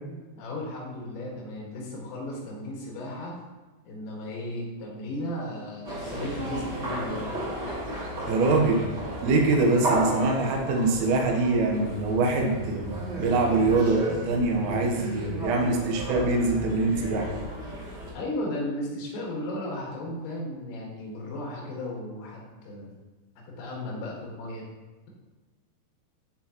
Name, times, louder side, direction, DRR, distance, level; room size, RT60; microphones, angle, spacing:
voice 1, 0.4-3.4 3.9-7.4 18.1-22.9 23.4-24.6, left 1 dB, 80° left, -3 dB, 4.4 m, -35 dB
sound 1, 5.8-18.1, right 1 dB, 45° right, 1.7 m, -34 dB
voice 2, 8.3-8.9 9.2-17.3, right 3 dB, 80° right, 1 dB, 3.6 m, -24 dB
13.0 x 4.6 x 3.0 m, 1.2 s
omnidirectional pair, 5.8 m